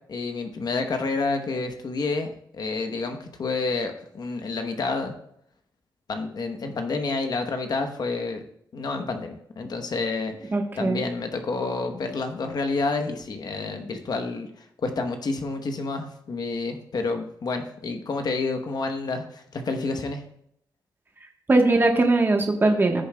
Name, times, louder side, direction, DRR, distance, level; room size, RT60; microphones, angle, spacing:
voice 1, 0.1-5.1 6.1-8.4 8.7-20.2, left 3 dB, 55° left, 5 dB, 1.0 m, -29 dB
voice 2, 10.5-11.0 21.5-23.0, right 2 dB, 25° right, 3 dB, 1.1 m, -20 dB
14.5 x 7.0 x 2.2 m, 0.72 s
wide cardioid pair, 120°, 8 cm